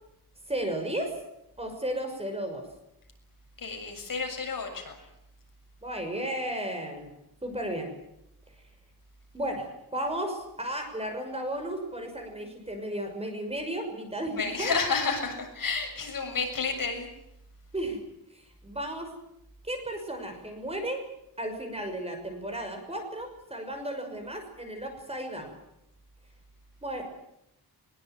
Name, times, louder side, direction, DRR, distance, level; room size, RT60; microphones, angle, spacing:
voice 1, 0.5-1.1 1.6-2.6 5.8-7.1 7.4-7.9 9.3-14.8 17.7-18.0 18.6-19.1 19.7-21.0 21.4-25.5 26.8-27.0, right 1 dB, 15° right, 4 dB, 6.1 m, -34 dB
voice 2, 3.6-5.0 14.4-17.1, left 4 dB, 55° left, 3 dB, 7.1 m, -30 dB
23.5 x 22.5 x 9.3 m, 0.80 s
wide cardioid pair, 175°, 39 cm